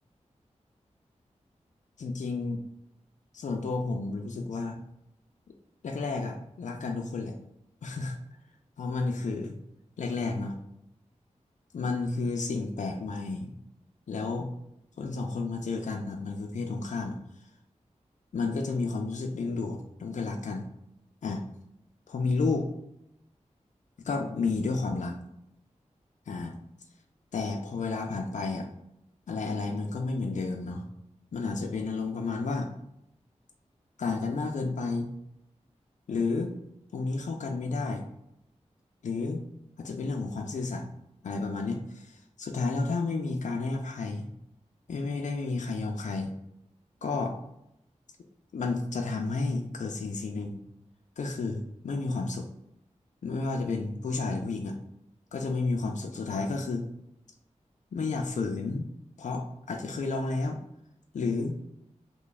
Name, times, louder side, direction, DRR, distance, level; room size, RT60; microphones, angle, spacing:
voice 1, 2.0-2.6 3.3-4.8 5.8-7.3 7.8-8.2 8.8-9.6 10.0-10.6 11.7-13.5 14.1-14.5 15.0-17.2 18.3-20.7 21.2-21.4 22.1-22.7 24.0-25.2 26.3-26.6 27.3-28.7 29.3-30.8 31.3-32.7 34.0-35.1 36.1-36.5 36.9-38.0 39.0-39.4 39.8-40.8 41.2-44.3 44.9-46.3 47.0-47.3 48.5-50.6 51.2-52.5 53.2-54.8 55.3-56.8 57.9-58.9 59.2-60.6 61.1-61.6, left 3 dB, 75° left, 2 dB, 0.4 m, -31 dB
3.1 x 2.3 x 4.0 m, 0.81 s
wide cardioid pair, 85°, 13 cm